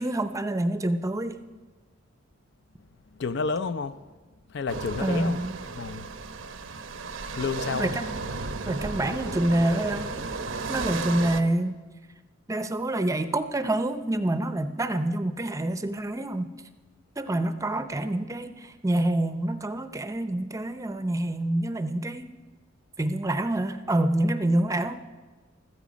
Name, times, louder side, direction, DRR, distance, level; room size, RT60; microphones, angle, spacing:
voice 1, 0.0-1.4 5.0-5.6 7.8-8.3 8.7-10.1 10.7-11.7 12.5-16.5 17.2-22.3 23.0-24.9, right 1 dB, 15° right, 0.6 m, -27 dB
voice 2, 3.2-4.0 4.5-5.4 5.7-6.1 7.4-7.9, left 4 dB, 60° left, 0.5 m, -30 dB
sound 1, 4.7-11.4, right 3 dB, 90° right, 0.9 m, -34 dB
15.5 x 14.0 x 5.2 m
head